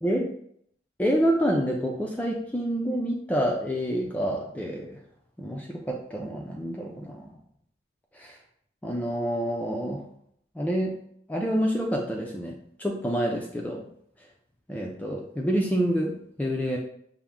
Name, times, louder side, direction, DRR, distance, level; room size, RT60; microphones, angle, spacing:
voice 1, 1.0-5.0 5.4-7.4 8.1-8.4 8.8-10.0 10.6-10.9 11.3-13.8 14.7-16.8, equal, 10° left, -1 dB, 0.4 m, -28 dB
5.7 x 2.1 x 3.6 m, 0.69 s
head